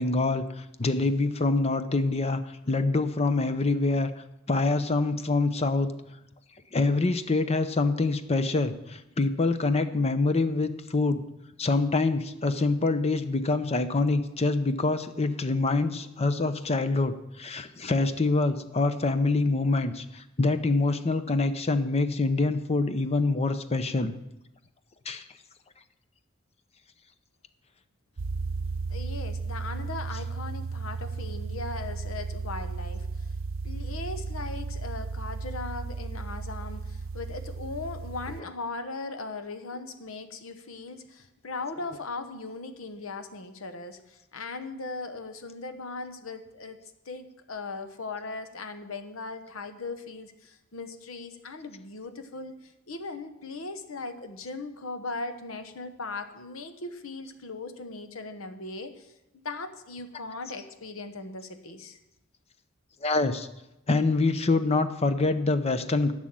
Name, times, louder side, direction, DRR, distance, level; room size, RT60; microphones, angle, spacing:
voice 1, 0.0-4.1 4.5-5.9 6.7-11.2 11.6-24.2 25.1-25.2 63.0-63.5 63.9-66.1, left 3 dB, 30° left, 11 dB, 0.7 m, -25 dB
sound 1, 28.2-38.4, right 4 dB, 75° right, 0.6 m, -34 dB
voice 2, 28.9-33.3 33.6-46.8 47.0-62.0, left 3 dB, 85° left, 9 dB, 1.1 m, -38 dB
11.5 x 6.3 x 8.8 m, 0.92 s
head